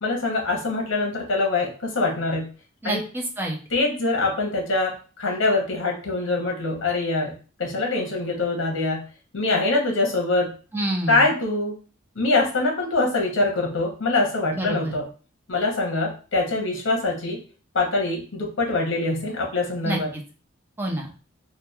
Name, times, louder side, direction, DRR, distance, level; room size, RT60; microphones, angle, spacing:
voice 1, 0.0-2.5 2.8-3.0 3.7-7.3 7.6-9.0 9.3-10.5 11.1-11.8 12.2-15.0 15.5-17.4 17.7-20.1, left 2 dB, 75° left, 0 dB, 0.8 m, -24 dB
voice 2, 2.8-3.6 10.7-11.3 14.5-14.9 19.8-20.2 20.8-21.1, right 1 dB, 10° right, 1 dB, 0.4 m, -28 dB
2.9 x 2.1 x 2.2 m, 0.38 s
head